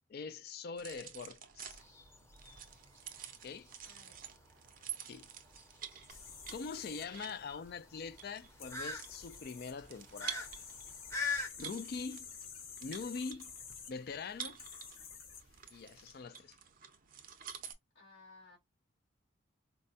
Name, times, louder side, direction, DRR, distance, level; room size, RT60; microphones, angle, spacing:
voice 1, 0.1-1.8 3.4-3.7 5.1-5.3 6.5-10.5 11.6-12.3 12.8-13.5 13.9-14.6 15.7-16.6, left 5 dB, 50° left, 0.3 m, -43 dB
sound 1, 0.8-17.7, right 9 dB, 45° right, 0.5 m, -50 dB
sound 2, 1.7-11.5, left 4 dB, 15° left, 0.7 m, -44 dB
voice 2, 3.8-4.4 17.9-18.6, left 3 dB, 70° left, 2.0 m, -59 dB
sound 3, 6.1-16.1, left 6 dB, 85° left, 1.4 m, -51 dB
4.4 x 2.1 x 2.6 m
head